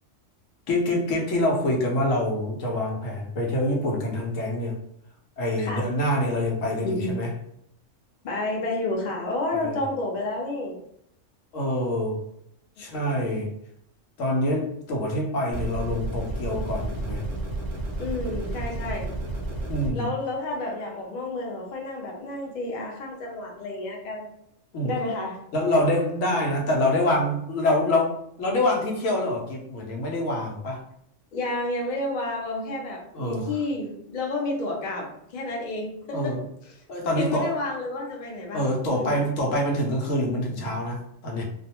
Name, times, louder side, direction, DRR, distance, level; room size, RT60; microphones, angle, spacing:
voice 1, 0.7-4.8 5.4-7.3 9.5-9.8 11.5-12.2 12.8-13.5 14.2-17.2 19.7-20.1 24.7-25.0 25.5-30.8 33.1-33.5 36.1-36.4 36.9-37.6 38.5-41.4, left 1 dB, 90° left, 0 dB, 1.0 m, -26 dB
voice 2, 6.8-7.1 8.2-10.8 12.8-13.1 18.0-19.1 19.9-24.3 24.8-25.4 31.3-36.4 37.1-39.2, left 2 dB, 50° left, -1 dB, 0.6 m, -30 dB
sound 1, 15.5-19.9, right 2 dB, 45° right, 0.6 m, -31 dB
2.4 x 2.2 x 2.8 m, 0.74 s
omnidirectional pair, 1.3 m